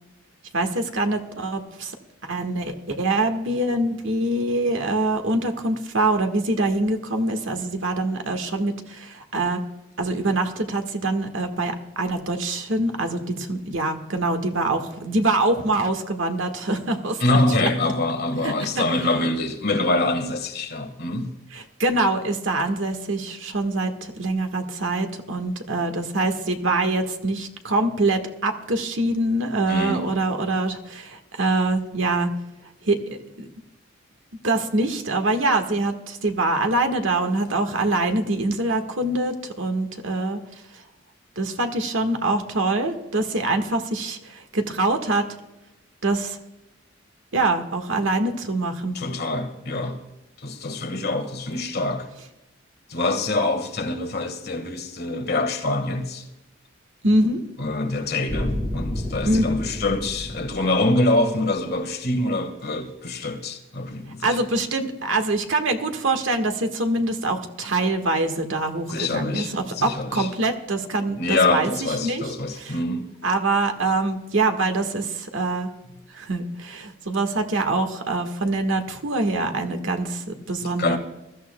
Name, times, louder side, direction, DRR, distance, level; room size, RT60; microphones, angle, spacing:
voice 1, 0.5-1.9 2.2-9.6 10.0-17.9 18.4-18.8 21.5-32.3 32.8-33.5 34.4-40.4 41.3-45.2 46.0-46.4 47.3-49.0 57.0-57.4 59.2-59.4 64.2-72.8 73.2-75.7 76.1-81.0, right 2 dB, 75° right, 1.6 m, -24 dB
voice 2, 17.2-21.3 29.7-30.0 48.9-50.0 50.4-52.1 52.9-56.2 57.6-64.3 68.9-70.3 71.2-73.1 80.8-81.0, left 2 dB, 50° left, 1.7 m, -25 dB
sound 1, 58.3-61.5, left 1 dB, 15° right, 4.3 m, -31 dB
21.5 x 14.0 x 2.3 m
head